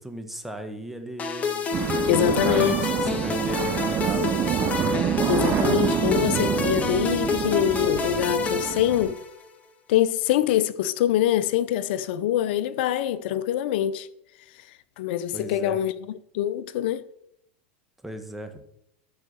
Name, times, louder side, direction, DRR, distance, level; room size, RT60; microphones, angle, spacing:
voice 1, 0.0-1.6 2.0-4.5 15.3-15.8 18.0-18.5, right 1 dB, 5° right, 1.4 m, -37 dB
sound 1, 1.2-9.5, left 4 dB, 25° left, 1.5 m, -28 dB
sound 2, 1.7-9.1, right 10 dB, 35° right, 0.6 m, -27 dB
voice 2, 2.1-2.7 5.3-9.2 9.9-14.1 15.0-15.9 16.3-17.0, left 11 dB, 70° left, 0.6 m, -24 dB
13.5 x 4.8 x 6.6 m
supercardioid pair, 120°, 6 cm